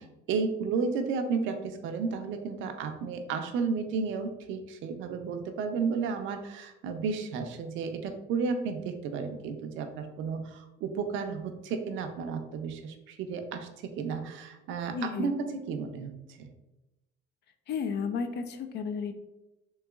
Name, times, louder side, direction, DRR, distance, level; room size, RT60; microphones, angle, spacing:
voice 1, 0.0-16.5, right 5 dB, 70° right, 6 dB, 0.5 m, -33 dB
voice 2, 14.9-15.3 17.7-19.1, left 6 dB, 55° left, 7 dB, 0.4 m, -32 dB
3.8 x 2.8 x 2.3 m, 0.96 s
cardioid pair, 105°, 21 cm